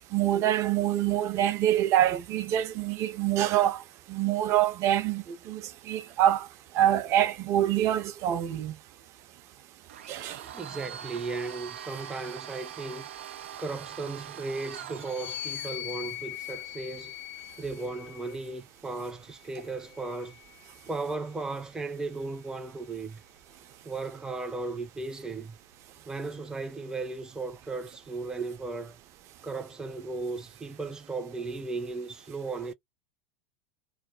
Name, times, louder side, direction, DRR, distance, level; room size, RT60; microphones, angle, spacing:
voice 1, 0.1-3.8 4.1-6.5 6.7-8.8 10.1-10.4, right 12 dB, 50° right, 0.7 m, -25 dB
Domestic sounds home sounds, 9.9-15.8, right 9 dB, 85° right, 0.4 m, -43 dB
voice 2, 10.5-13.1 13.6-17.2 17.6-20.4 20.9-23.2 23.8-25.6 26.1-29.0 29.4-32.7, right 3 dB, 10° right, 0.6 m, -36 dB
sound 1, 14.9-18.5 19.4-21.0, left 14 dB, 70° left, 0.5 m, -41 dB
2.1 x 2.1 x 3.6 m
hypercardioid pair, 100°, 6 cm